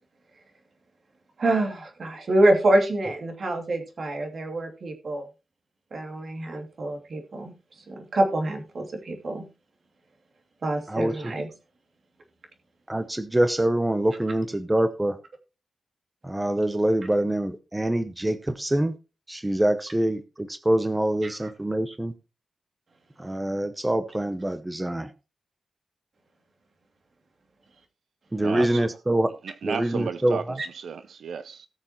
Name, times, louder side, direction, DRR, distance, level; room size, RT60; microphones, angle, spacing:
voice 1, 1.4-5.3 5.9-9.5 10.6-11.5 21.2-21.3 30.6-30.7, right 1 dB, 50° right, 2.7 m, -26 dB
voice 2, 10.9-11.3 12.9-15.2 16.2-19.0 19.3-22.1 23.2-25.1 28.3-29.3 29.6-30.6, right 1 dB, 10° right, 0.8 m, -25 dB
voice 3, 28.4-28.8 29.4-31.7, right 6 dB, 90° right, 0.6 m, -34 dB
18.5 x 6.6 x 3.0 m
wide cardioid pair, 135°, 0 cm